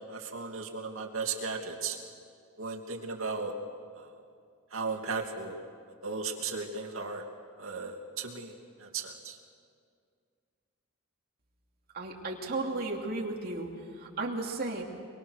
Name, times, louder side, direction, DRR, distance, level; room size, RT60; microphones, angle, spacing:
voice 1, 0.1-2.0 2.6-3.5 4.0-4.1 4.7-5.5 6.0-7.2 7.6-8.5 8.8-9.4, right 4 dB, 70° right, 2 dB, 2.7 m, -36 dB
voice 2, 11.9-13.7 14.2-14.8, right 2 dB, 50° right, -1 dB, 2.9 m, -34 dB
24.0 x 24.0 x 6.5 m, 2.2 s
head